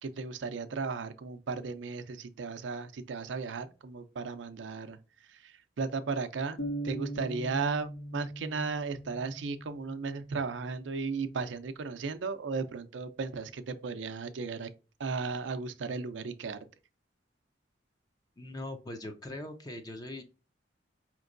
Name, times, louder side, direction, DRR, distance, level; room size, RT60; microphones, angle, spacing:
voice 1, 0.0-5.0 5.3-14.7 15.0-16.6, right 4 dB, 90° right, 0.5 m, -35 dB
sound 1, 6.6-10.3, right 1 dB, 75° left, 0.9 m, -40 dB
voice 2, 18.4-20.2, left 1 dB, 20° left, 0.5 m, -41 dB
5.1 x 3.0 x 2.5 m
head